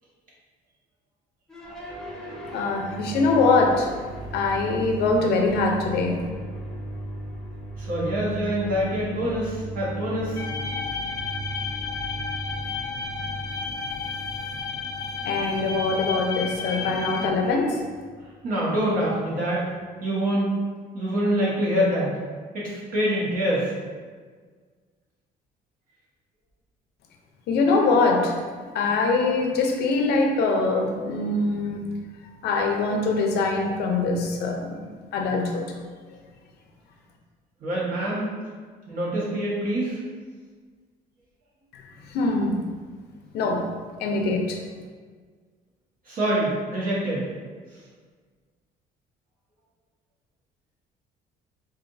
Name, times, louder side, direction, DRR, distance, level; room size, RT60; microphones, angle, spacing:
sound 1, 1.5-19.8, right 1 dB, 5° left, 0.8 m, -37 dB
voice 1, 2.5-3.9 4.3-6.3 15.2-17.8 27.5-31.9 32.4-34.8 35.1-35.7 41.7-41.8 42.1-42.6 43.3-43.6 44.0-44.6, left 3 dB, 75° left, 1 dB, 0.6 m, -23 dB
voice 2, 7.8-10.4 18.4-19.7 20.0-20.5 20.9-22.2 22.5-23.7 37.6-38.3 38.9-40.0 46.1-47.3, equal, 55° right, -7 dB, 1.5 m, -25 dB
sound 2, 10.4-17.3, left 5 dB, 20° left, 0.4 m, -32 dB
4.8 x 2.6 x 2.6 m, 1.6 s
cardioid pair, 110°, 17 cm